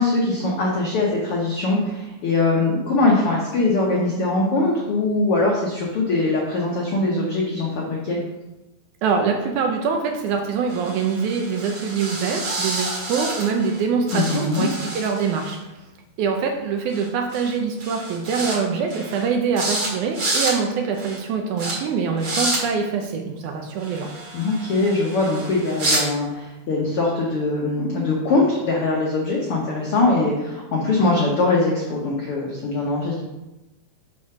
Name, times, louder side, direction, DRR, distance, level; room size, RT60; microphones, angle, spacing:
voice 1, 0.0-8.2 14.1-14.7 24.3-33.3, left 2 dB, 75° left, -2 dB, 1.2 m, -22 dB
voice 2, 9.0-15.6 16.2-24.1, right 5 dB, 75° right, 3 dB, 1.9 m, -24 dB
sound 1, 10.7-13.8 14.1-15.6 16.9-17.1 17.3-17.6 17.8-18.6 18.9-19.2 19.6-19.9 20.1-20.5 21.0-21.2 21.6-21.7 22.2-22.6 23.8-26.0, right 2 dB, 50° right, 2.5 m, -29 dB
6.2 x 4.3 x 5.7 m, 1.0 s
omnidirectional pair, 4.0 m